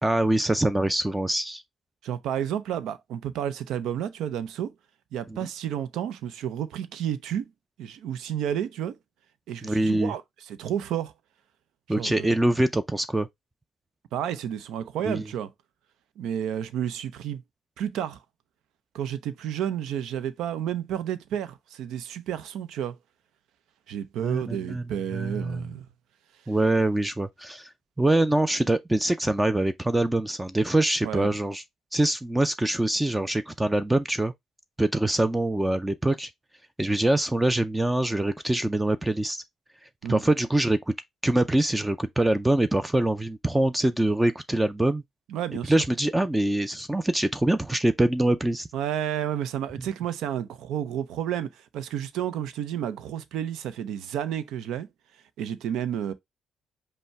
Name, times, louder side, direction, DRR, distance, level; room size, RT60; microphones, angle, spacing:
voice 1, 0.0-1.6 5.3-5.4 9.6-10.1 11.9-13.3 15.0-15.2 24.2-24.8 25.1-25.7 26.5-27.7 28.0-31.6 31.9-34.3 34.8-36.3 36.8-39.4 40.1-40.9 41.2-45.0 45.7-48.7, right 1 dB, 10° right, 0.5 m, -24 dB
voice 2, 2.0-4.7 5.1-7.5 7.8-9.0 9.5-11.1 12.0-12.4 14.1-15.5 16.2-17.4 17.8-18.2 18.9-23.0 23.9-25.9 31.0-31.3 40.0-40.2 45.3-45.7 48.7-54.9 55.4-56.1, right 10 dB, 85° right, 0.6 m, -31 dB
5.4 x 2.2 x 4.6 m
cardioid pair, 90°, 0 cm